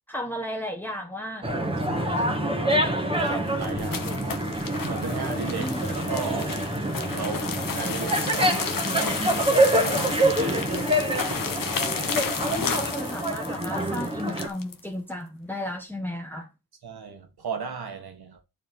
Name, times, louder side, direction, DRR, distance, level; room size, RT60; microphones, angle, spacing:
voice 1, 0.1-1.5 5.6-5.8 12.4-16.5, left 1 dB, 5° left, 1.6 m, -34 dB
sound 1, 1.4-14.5, right 1 dB, 15° right, 1.9 m, -26 dB
voice 2, 1.8-2.9 3.2-4.2 4.8-6.6 6.9-9.3 9.8-11.3 16.8-18.4, right 5 dB, 75° right, 1.9 m, -36 dB
sound 2, 3.0-14.8, left 6 dB, 60° left, 1.1 m, -33 dB
8.9 x 4.4 x 5.5 m
cardioid pair, 80°, 38 cm